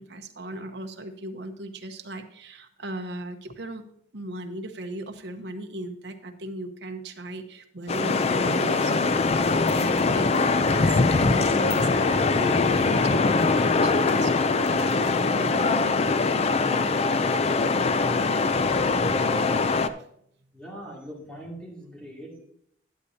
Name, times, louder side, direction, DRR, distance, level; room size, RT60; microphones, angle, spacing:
voice 1, 0.0-3.8 4.1-9.2 9.5-16.1 17.1-17.2 19.4-19.5 19.9-20.1, right 1 dB, 65° right, 5 dB, 0.9 m, -38 dB
sound 1, 7.9-19.9, left 3 dB, 35° left, 0.4 m, -22 dB
voice 2, 20.5-22.4, equal, 5° left, -3 dB, 2.3 m, -41 dB
11.5 x 9.8 x 2.8 m, 0.69 s
head